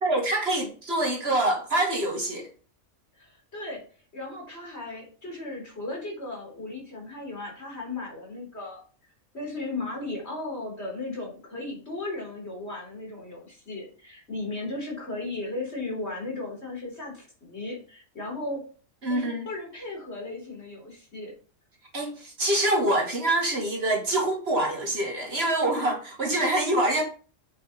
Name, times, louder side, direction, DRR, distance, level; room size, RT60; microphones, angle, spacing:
voice 1, 0.0-2.5 19.0-19.5 21.9-27.0, right 1 dB, 50° right, 2.6 m, -25 dB
voice 2, 3.2-3.8 4.1-8.8 9.3-18.7 19.1-21.3, left 2 dB, 55° left, 4.3 m, -36 dB
8.0 x 7.7 x 4.4 m
omnidirectional pair, 1.3 m